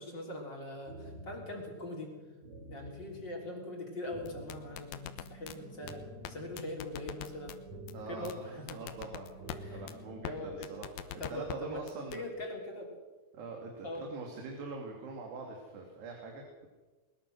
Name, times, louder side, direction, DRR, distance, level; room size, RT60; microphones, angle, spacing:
voice 1, 0.0-2.1 2.7-6.0 6.3-7.6 8.1-8.8 9.6-9.8 10.2-10.7 11.2-11.8 12.1-13.0 13.8-14.1, left 1 dB, 30° left, 0 dB, 3.8 m, -42 dB
sound 1, 0.9-10.8, equal, 45° right, 5.8 m, -50 dB
sound 2, 4.3-5.6 5.9-6.0 6.2-6.3 6.6-7.6 7.9-8.0 8.3-8.4 8.7-9.6 9.9-10.0 10.2-10.3 10.6-11.6 11.9-12.2, left 11 dB, 70° left, 2.6 m, -41 dB
voice 2, 7.9-10.9 11.3-12.2 13.3-16.7, right 3 dB, 80° right, 1 dB, 4.7 m, -43 dB
21.0 x 21.0 x 6.3 m, 1.3 s
omnidirectional pair, 4.7 m